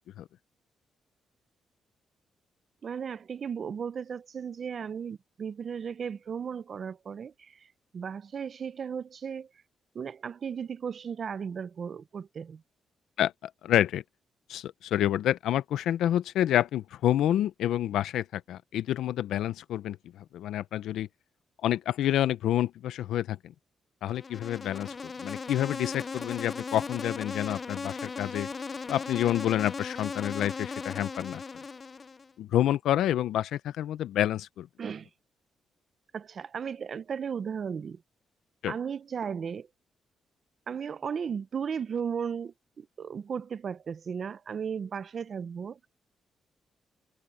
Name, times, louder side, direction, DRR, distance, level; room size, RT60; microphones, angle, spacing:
voice 1, 2.8-7.6 7.9-9.5 9.9-12.6 34.8-35.1 36.1-38.0 38.7-39.7 40.7-45.8, right 7 dB, 55° right, 0.7 m, -35 dB
voice 2, 13.6-14.0 14.5-21.1 21.6-23.4 24.0-24.9 25.2-28.5 28.9-31.4 32.4-34.7 38.6-38.7, left 12 dB, 85° left, 0.5 m, -28 dB
Insect, 24.1-32.3, left 4 dB, 35° left, 0.4 m, -38 dB
cardioid pair, 85°, 0 cm